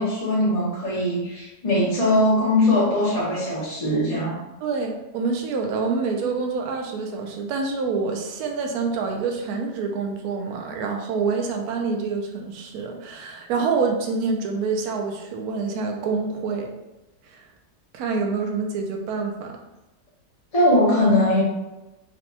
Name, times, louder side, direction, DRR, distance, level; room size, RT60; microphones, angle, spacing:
voice 1, 0.0-4.4 20.5-21.4, left 1 dB, 40° left, -7 dB, 0.5 m, -20 dB
voice 2, 4.6-16.7 17.3-17.4 17.9-19.5, right 4 dB, 75° right, 2 dB, 1.0 m, -26 dB
4.1 x 2.2 x 2.7 m, 1.0 s
omnidirectional pair, 1.7 m